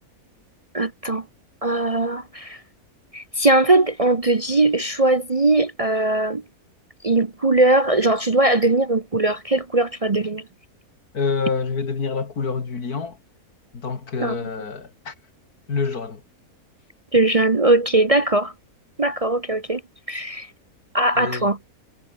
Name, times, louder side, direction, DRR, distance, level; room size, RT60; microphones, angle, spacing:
voice 1, 0.7-1.2 1.6-2.6 3.1-6.4 7.0-10.4 14.2-14.4 17.1-18.5 19.0-19.8 20.1-20.5 20.9-21.6, right 2 dB, 30° right, 0.8 m, -20 dB
voice 2, 11.1-13.2 13.7-15.1 15.7-16.2 21.2-21.5, left 5 dB, 80° left, 3.0 m, -27 dB
omnidirectional pair, 1.6 m